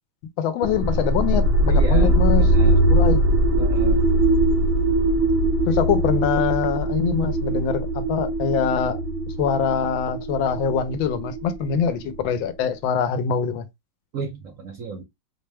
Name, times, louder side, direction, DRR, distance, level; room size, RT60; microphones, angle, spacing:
voice 1, 0.4-3.3 5.7-9.0 9.4-13.6, left 7 dB, 85° left, 1.4 m, -24 dB
sound 1, 0.6-12.4, right 1 dB, 85° right, 1.5 m, -21 dB
voice 2, 1.7-2.8 3.5-4.1 14.1-15.0, right 5 dB, 65° right, 0.9 m, -33 dB
4.5 x 2.1 x 3.3 m
omnidirectional pair, 2.1 m